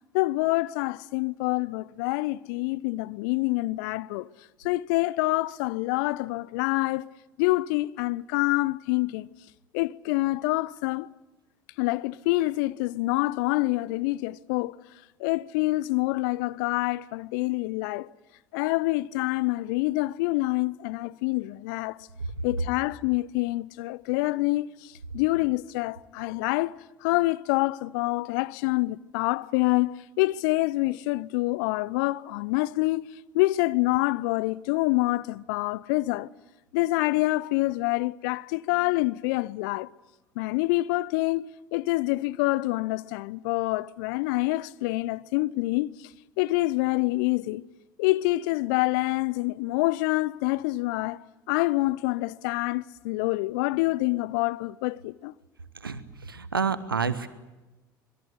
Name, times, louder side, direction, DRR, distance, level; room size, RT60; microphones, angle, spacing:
voice 1, 0.1-4.3 4.6-7.1 7.4-9.3 9.7-11.1 11.8-14.8 15.2-18.1 18.5-22.0 22.4-26.7 27.0-33.1 33.3-36.3 36.7-39.9 40.4-45.9 46.4-47.6 48.0-51.2 51.5-55.3, left 20 dB, 65° left, 0.8 m, -26 dB
voice 2, 56.3-57.3, right 5 dB, 85° right, 1.4 m, -28 dB
26.0 x 22.0 x 8.1 m
figure-of-eight pair, 65°, 11 cm